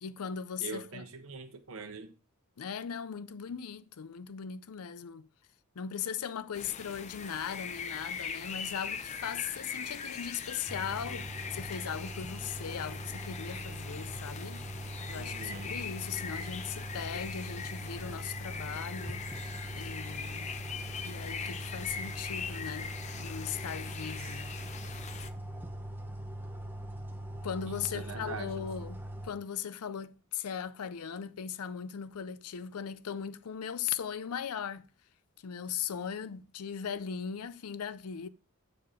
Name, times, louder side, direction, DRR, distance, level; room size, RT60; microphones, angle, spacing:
voice 1, 0.0-1.0 2.6-5.3 5.8-14.6 15.1-19.2 19.7-20.5 21.0-24.5 27.4-34.9 35.4-38.3, left 7 dB, 85° left, 0.5 m, -38 dB
voice 2, 0.6-2.1 15.1-15.8 24.2-24.3 27.7-28.5, right 4 dB, 65° right, 0.8 m, -43 dB
sound 1, 6.5-25.3, left 6 dB, 30° left, 0.5 m, -41 dB
sound 2, 10.7-29.3, right 1 dB, 10° right, 0.7 m, -42 dB
7.5 x 4.5 x 5.0 m
head